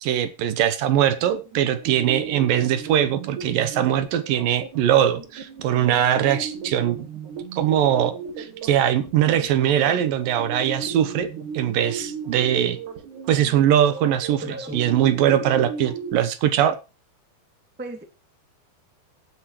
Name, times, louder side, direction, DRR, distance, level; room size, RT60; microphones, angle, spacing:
voice 1, 0.0-7.1 7.5-11.3 11.5-12.8 13.3-14.4 14.7-16.8, right 10 dB, 70° right, 12 dB, 2.3 m, -21 dB
sound 1, 1.2-16.1, right 6 dB, 50° right, 3.3 m, -36 dB
voice 2, 14.4-14.9 17.8-18.0, right 2 dB, 5° right, 5 dB, 0.9 m, -35 dB
17.0 x 9.5 x 3.1 m, 0.29 s
omnidirectional pair, 5.1 m